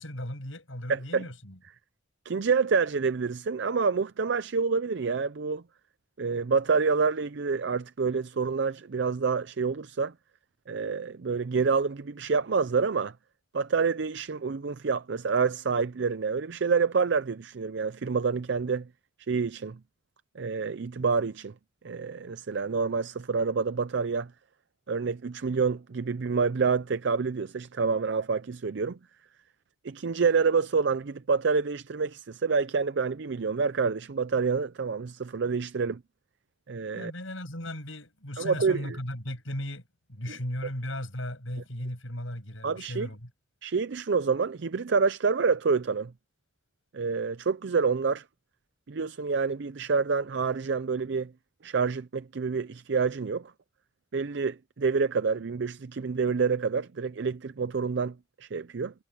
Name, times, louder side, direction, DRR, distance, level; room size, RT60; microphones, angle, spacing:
voice 1, 0.0-1.6 36.9-39.8 40.1-43.3, left 1 dB, 75° left, 7.3 m, -36 dB
voice 2, 0.9-1.3 2.3-5.6 6.2-10.1 10.7-13.1 13.5-18.9 19.3-19.8 20.4-21.5 21.8-24.3 24.9-29.0 29.8-36.0 36.7-37.1 38.4-39.0 40.3-40.4 42.6-43.1 43.6-46.1 46.9-48.2 48.9-51.3 51.6-53.5 54.1-58.9, right 5 dB, 60° right, 0.5 m, -27 dB
head